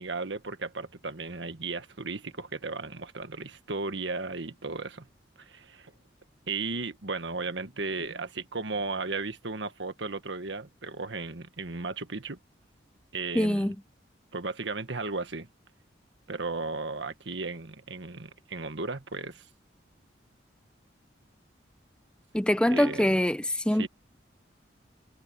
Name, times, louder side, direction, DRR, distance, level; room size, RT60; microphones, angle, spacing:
voice 1, 0.0-5.1 5.4-5.9 6.5-12.4 13.1-13.7 14.3-15.5 16.3-19.4 22.7-23.1 23.8-23.9, right 3 dB, 80° right, 1.5 m, -35 dB
voice 2, 13.3-13.8 22.3-23.9, left 1 dB, 5° left, 0.5 m, -24 dB
head